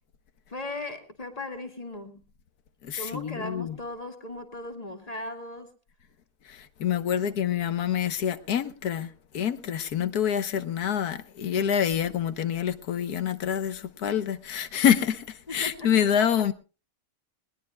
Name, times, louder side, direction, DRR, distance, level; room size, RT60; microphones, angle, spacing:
voice 1, 0.5-2.2 3.0-5.7 7.1-7.5 15.5-16.1, left 2 dB, 25° left, 2.1 m, -38 dB
voice 2, 2.8-3.8 6.5-9.1 9.3-16.5, left 9 dB, 85° left, 1.6 m, -26 dB
20.5 x 20.0 x 2.2 m
omnidirectional pair, 1.6 m